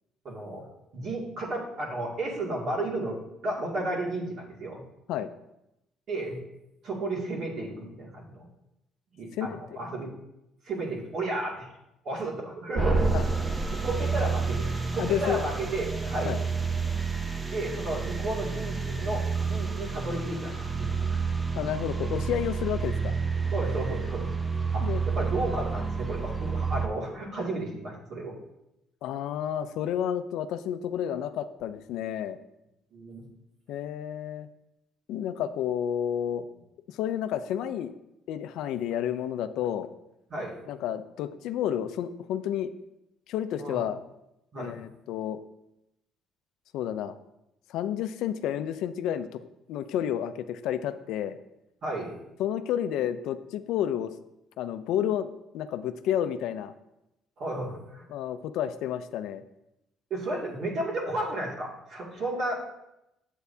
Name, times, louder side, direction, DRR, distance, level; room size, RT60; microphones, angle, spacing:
voice 1, 0.2-0.7 0.9-4.8 6.1-6.4 6.8-8.5 9.1-10.1 10.6-11.7 12.0-13.3 13.8-16.4 17.5-21.2 23.5-24.3 24.7-28.3 32.9-33.3 40.3-40.6 43.6-43.8 44.5-44.8 51.8-52.1 57.4-58.0 60.1-62.6, right 2 dB, 50° right, -3 dB, 2.2 m, -33 dB
sound 1, 12.7-26.9, right 4 dB, 15° right, 0.6 m, -29 dB
voice 2, 15.0-15.4 16.2-16.4 21.6-23.1 24.8-25.0 29.0-32.4 33.7-34.5 35.1-36.5 36.9-37.9 38.3-39.9 40.7-42.7 43.3-44.0 44.6-45.4 46.7-47.1 47.7-49.3 49.7-51.4 52.4-54.1 54.6-55.3 55.5-56.7 58.1-59.4, left 10 dB, 75° left, 11 dB, 0.4 m, -30 dB
8.1 x 7.8 x 2.7 m, 0.87 s
cardioid pair, 120°, 0 cm